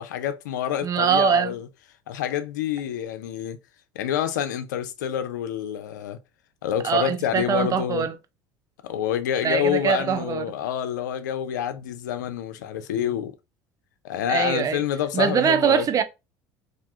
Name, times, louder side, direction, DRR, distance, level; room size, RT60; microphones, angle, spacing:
voice 1, 0.0-1.7 2.1-3.6 3.9-6.2 6.6-8.1 8.8-13.4 14.0-15.9, left 10 dB, 85° left, 0.4 m, -27 dB
voice 2, 0.8-1.5 6.8-8.1 9.4-10.4 14.3-14.8 15.1-16.0, right 8 dB, 40° right, 0.5 m, -22 dB
2.4 x 2.2 x 2.7 m
hypercardioid pair, 75°, 10 cm